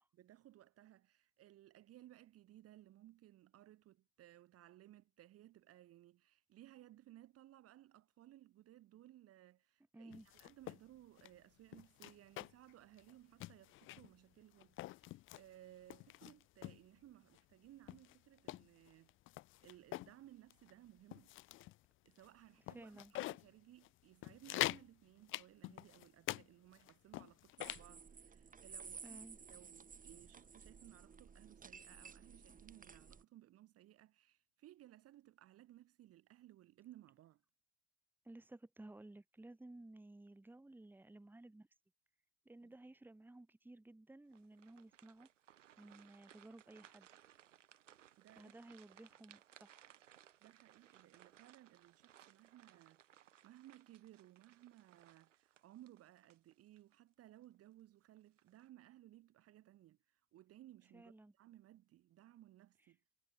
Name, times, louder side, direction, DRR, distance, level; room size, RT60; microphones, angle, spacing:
voice 1, 0.0-19.1 19.6-21.3 22.0-37.4 42.6-42.7 48.2-48.5 50.4-63.0, right 14 dB, 40° right, 1.2 m, -61 dB
voice 2, 9.9-10.3 22.7-23.1 29.0-29.4 38.2-41.7 42.4-45.3 45.8-47.1 48.4-49.8 60.9-61.3, right 2 dB, 5° right, 1.5 m, -56 dB
sound 1, 10.1-10.8 11.2-11.3 11.7-12.7 13.0-13.1 13.4-14.1 14.6-15.4 15.9-16.8 17.4-17.5 17.9-20.1 20.5-20.7 21.1-21.8 22.2-22.3 22.7-23.4 23.8-23.9 24.2-24.9 25.3-26.4 26.7-27.9, left 17 dB, 35° left, 0.5 m, -44 dB
sound 2, 27.6-33.2, right 6 dB, 20° right, 2.2 m, -55 dB
sound 3, 44.3-56.9 57.4-57.6 58.2-58.6, right 11 dB, 80° right, 4.9 m, -65 dB
hypercardioid pair, 75°, 37 cm